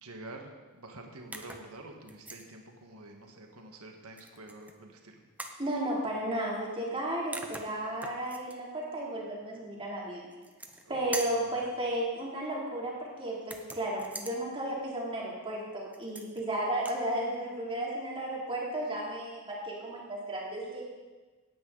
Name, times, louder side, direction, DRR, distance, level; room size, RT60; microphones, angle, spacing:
voice 1, 0.0-5.2 10.8-11.6, right 2 dB, 75° right, 2 dB, 1.6 m, -48 dB
sound 1, 1.3-1.7 2.1-2.5 4.2-4.7 5.4-5.6 7.0-7.1 7.3-8.6 10.3-10.9 11.1-11.5 13.4-14.4 15.9-16.4 16.7-17.0, right 2 dB, 5° right, 0.9 m, -42 dB
voice 2, 5.6-10.2 10.9-20.8, right 1 dB, 25° right, -4 dB, 3.0 m, -34 dB
17.0 x 9.6 x 4.0 m, 1.3 s
head